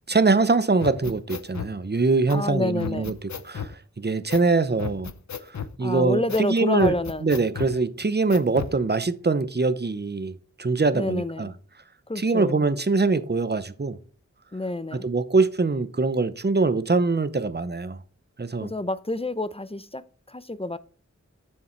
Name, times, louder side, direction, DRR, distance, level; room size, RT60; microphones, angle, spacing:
voice 1, 0.1-3.1 3.4-5.1 5.8-6.9 7.2-11.5 12.2-14.0 14.9-18.0 18.4-18.7, right 3 dB, 35° right, 0.7 m, -23 dB
sound 1, 0.8-1.7 2.3-2.4 2.8-3.7 4.3-4.5 4.8-5.8 6.3-6.5 6.8-7.7 8.3-8.8, left 7 dB, 70° left, 0.6 m, -34 dB
voice 2, 2.3-3.1 5.8-7.3 10.9-11.5 12.1-12.6 14.5-15.1 18.6-20.8, left 2 dB, 20° left, 0.6 m, -28 dB
7.0 x 6.6 x 4.5 m
wide cardioid pair, 50°, 30 cm